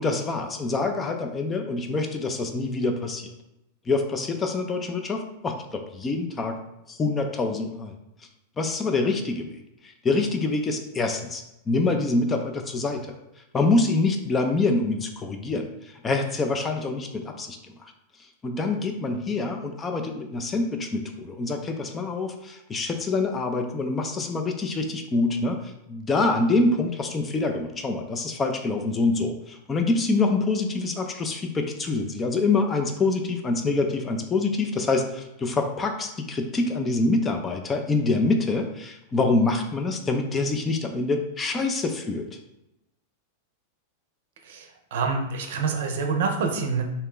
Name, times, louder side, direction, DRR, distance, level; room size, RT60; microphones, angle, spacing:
voice 1, 0.0-3.3 3.9-6.6 6.9-7.9 8.6-13.1 13.5-17.8 18.4-42.3, left 3 dB, 20° left, 5 dB, 0.4 m, -26 dB
voice 2, 44.9-46.8, right 5 dB, 55° right, 4 dB, 0.6 m, -26 dB
3.2 x 2.8 x 3.6 m, 0.87 s
figure-of-eight pair, 90°, 0 cm